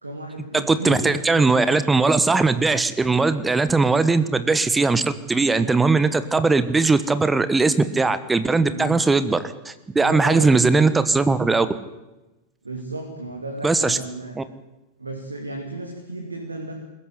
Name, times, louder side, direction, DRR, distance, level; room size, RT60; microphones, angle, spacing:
voice 1, 0.0-1.8 8.6-9.0 10.0-10.8 12.6-14.3 15.0-16.7, right 2 dB, 80° right, 2 dB, 2.8 m, -34 dB
voice 2, 0.5-5.0 5.3-9.4 9.6-11.7 13.6-14.0 14.4-14.5, right 3 dB, 10° right, 13 dB, 1.3 m, -19 dB
21.5 x 14.5 x 9.6 m, 1.0 s
figure-of-eight pair, 90°, 0 cm